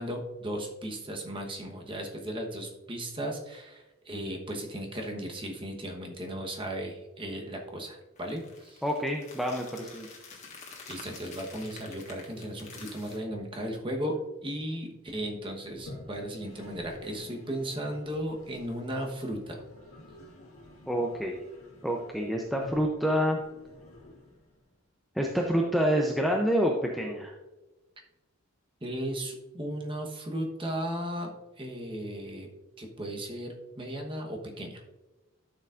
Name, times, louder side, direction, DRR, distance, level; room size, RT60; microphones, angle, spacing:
voice 1, 0.0-8.8 10.9-19.6 28.8-31.3 31.6-32.5 32.8-34.8, right 1 dB, 25° right, 1 dB, 1.1 m, -36 dB
sound 1, 8.2-13.2, left 4 dB, 35° left, 1.5 m, -48 dB
voice 2, 8.8-10.1 20.9-21.4 21.8-23.4 25.1-27.3, equal, ahead, 0 dB, 0.5 m, -27 dB
Toilet flush, 15.6-24.8, left 2 dB, 85° left, 1.8 m, -50 dB
11.5 x 6.8 x 2.5 m, 1.1 s
head